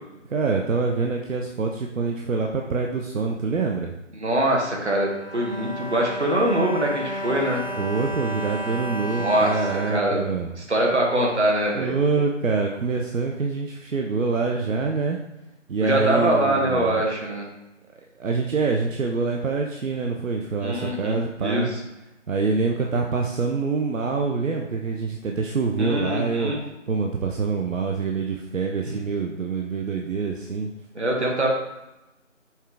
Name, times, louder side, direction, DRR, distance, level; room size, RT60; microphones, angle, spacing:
voice 1, 0.3-3.9 7.8-10.5 11.8-15.2 15.7-17.0 18.2-21.7 22.3-26.5 26.9-30.7, right 4 dB, 85° right, 2 dB, 0.6 m, -25 dB
voice 2, 4.2-7.6 9.1-11.9 15.8-17.5 20.6-21.8 25.8-26.6 28.9-29.0 30.9-31.5, right 1 dB, 60° right, -1 dB, 1.2 m, -23 dB
Bowed string instrument, 4.7-11.0 11.7-11.8 12.1-12.2, equal, 50° left, 0.5 m, -33 dB
5.5 x 2.4 x 3.3 m, 0.95 s
figure-of-eight pair, 165°, 38 cm